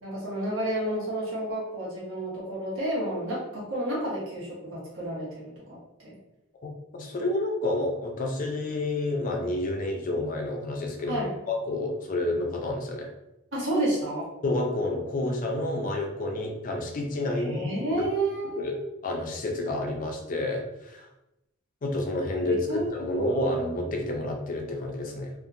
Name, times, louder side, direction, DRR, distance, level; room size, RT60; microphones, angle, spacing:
voice 1, 0.0-6.2 11.1-11.3 13.5-14.3 17.5-18.8 22.7-23.6, right 1 dB, 75° right, -6 dB, 1.2 m, -30 dB
voice 2, 6.6-13.1 14.4-17.7 18.6-18.8 19.0-21.0 21.8-25.3, left 2 dB, 40° left, 2 dB, 0.4 m, -29 dB
2.7 x 2.4 x 2.5 m, 0.90 s
head